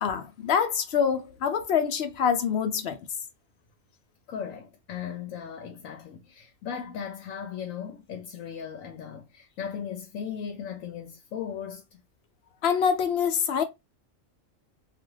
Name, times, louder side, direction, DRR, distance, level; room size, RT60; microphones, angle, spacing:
voice 1, 0.0-3.0 12.6-13.6, left 7 dB, 60° left, 0.8 m, -25 dB
voice 2, 4.3-12.0, left 7 dB, 90° left, 1.0 m, -37 dB
2.4 x 2.4 x 3.0 m
omnidirectional pair, 1.3 m